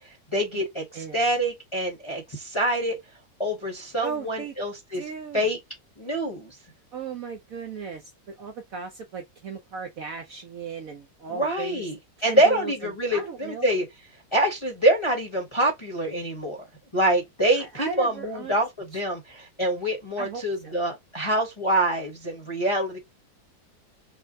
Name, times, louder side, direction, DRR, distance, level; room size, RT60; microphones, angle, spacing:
voice 1, 0.0-3.0 3.4-5.0 5.3-5.6 6.0-6.6 11.3-13.9 14.3-16.7 16.9-23.0, right 1 dB, 20° left, 0.9 m, -25 dB
voice 2, 4.0-4.5 4.9-5.5 6.9-11.8 12.3-13.7 17.6-18.6 20.2-20.8, right 5 dB, 65° right, 0.9 m, -36 dB
5.5 x 2.1 x 2.7 m
omnidirectional pair, 2.0 m